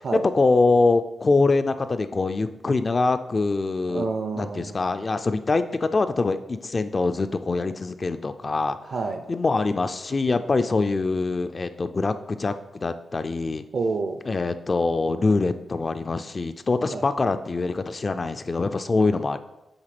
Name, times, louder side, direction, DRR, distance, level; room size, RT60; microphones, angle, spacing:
voice 1, 0.3-4.1 4.4-8.8 9.3-13.6 14.3-19.4, left 3 dB, 30° left, 9 dB, 0.4 m, -24 dB
voice 2, 3.9-4.9 8.8-9.2 13.7-14.2 16.9-17.1, right 4 dB, 55° right, 6 dB, 0.5 m, -28 dB
7.9 x 3.5 x 5.9 m, 0.93 s
wide cardioid pair, 135°, 0 cm